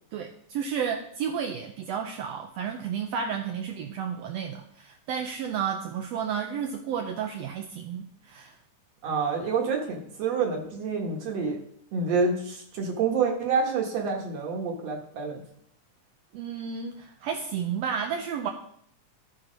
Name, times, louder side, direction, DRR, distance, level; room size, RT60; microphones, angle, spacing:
voice 1, 0.1-8.6 16.3-18.5, right 7 dB, 75° right, 3 dB, 1.5 m, -32 dB
voice 2, 9.0-11.6 11.9-15.4, right 5 dB, 55° right, 1 dB, 2.4 m, -28 dB
13.5 x 4.5 x 5.2 m, 0.67 s
omnidirectional pair, 3.7 m